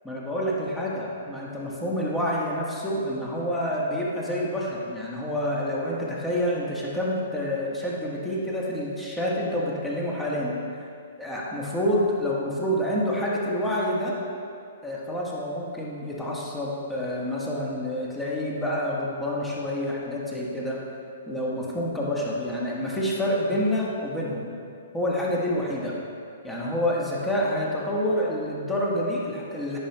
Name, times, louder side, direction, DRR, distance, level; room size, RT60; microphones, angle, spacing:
voice 1, 0.0-10.6 11.2-14.1 14.8-20.8 21.3-24.5 24.9-25.9 26.4-29.8, equal, 5° left, -5 dB, 1.4 m, -28 dB
10.0 x 5.3 x 3.0 m, 2.4 s
figure-of-eight pair, 120°, 0 cm